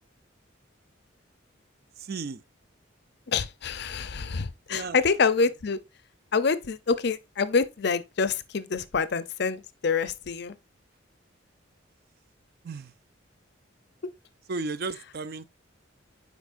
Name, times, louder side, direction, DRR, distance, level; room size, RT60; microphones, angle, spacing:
voice 1, 2.1-2.4 4.7-5.0 12.6-12.9 14.5-15.5, right 3 dB, 50° right, 0.4 m, -34 dB
voice 2, 3.3-5.8 6.3-10.6, left 5 dB, 55° left, 0.5 m, -26 dB
8.2 x 5.1 x 2.5 m
head